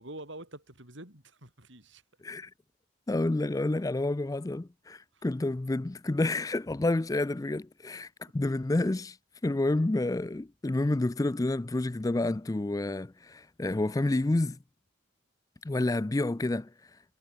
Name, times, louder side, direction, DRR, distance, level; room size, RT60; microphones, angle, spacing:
voice 1, 0.0-2.0 5.1-5.3 8.2-8.3 15.7-15.9, right 1 dB, 60° right, 7.7 m, -47 dB
voice 2, 3.1-9.2 9.4-14.6 15.6-16.7, left 2 dB, 15° left, 0.4 m, -29 dB
head